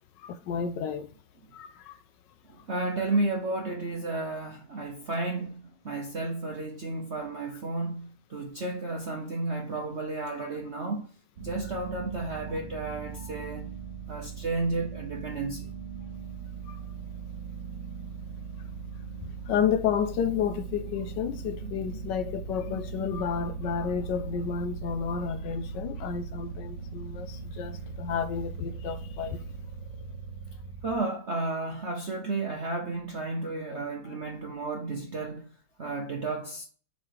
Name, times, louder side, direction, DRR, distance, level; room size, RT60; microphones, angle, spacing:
voice 1, 0.2-1.1 1.5-2.0 10.4-10.5 13.1-13.5 16.7-16.8 19.5-29.4, left 7 dB, 75° left, 1.1 m, -31 dB
voice 2, 2.5-11.1 11.4-13.7 14.1-15.7 21.6-21.7 22.7-22.8 30.8-35.5 35.8-36.7, right 2 dB, 55° right, 0.7 m, -32 dB
sound 1, 11.4-31.0, right 5 dB, 90° right, 2.0 m, -39 dB
7.1 x 3.2 x 4.7 m
omnidirectional pair, 2.2 m